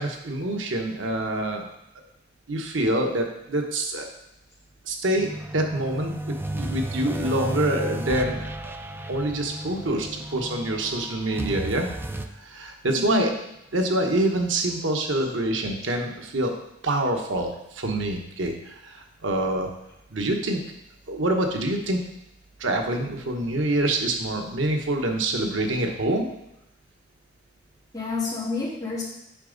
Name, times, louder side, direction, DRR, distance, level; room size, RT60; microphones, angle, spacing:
voice 1, 0.0-1.7 1.9-2.0 2.5-4.1 4.9-8.7 9.1-13.3 13.7-16.5 16.8-19.7 20.1-20.6 21.1-22.0 22.6-26.3, right 1 dB, 85° right, 3 dB, 1.1 m, -26 dB
sound 1, 5.1-12.3, right 1 dB, 10° right, 0.4 m, -33 dB
voice 2, 12.9-13.3 27.9-29.0, left 4 dB, 20° left, -8 dB, 3.0 m, -29 dB
8.4 x 6.0 x 3.9 m, 0.84 s
head